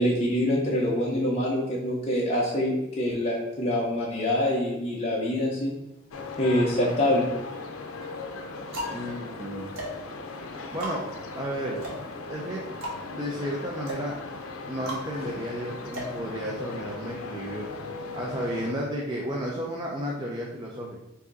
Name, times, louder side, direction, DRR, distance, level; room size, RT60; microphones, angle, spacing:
voice 1, 0.0-5.7 6.4-7.3, left 1 dB, 30° left, -4 dB, 0.7 m, -25 dB
sound 1, 6.1-18.7, left 3 dB, 85° left, 0.5 m, -38 dB
sound 2, 8.7-16.9, equal, 75° right, 1.3 m, -39 dB
voice 2, 8.9-9.7 10.7-11.0 11.4-11.8 12.3-12.6 13.1-14.1 14.7-17.7 18.1-20.9, equal, 20° right, -3 dB, 0.5 m, -32 dB
5.0 x 2.7 x 3.9 m, 0.90 s
head